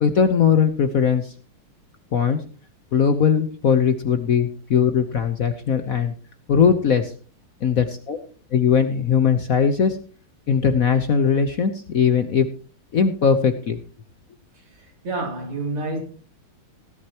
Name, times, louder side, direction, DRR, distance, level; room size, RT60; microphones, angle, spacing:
voice 1, 0.0-1.3 2.1-2.4 2.9-6.1 6.5-7.1 7.6-8.2 8.5-10.0 10.5-12.5 12.9-13.8, left 7 dB, 55° left, 1.0 m, -19 dB
voice 2, 14.8-16.0, right 2 dB, 80° right, 4.0 m, -28 dB
17.5 x 11.0 x 2.9 m
omnidirectional pair, 2.4 m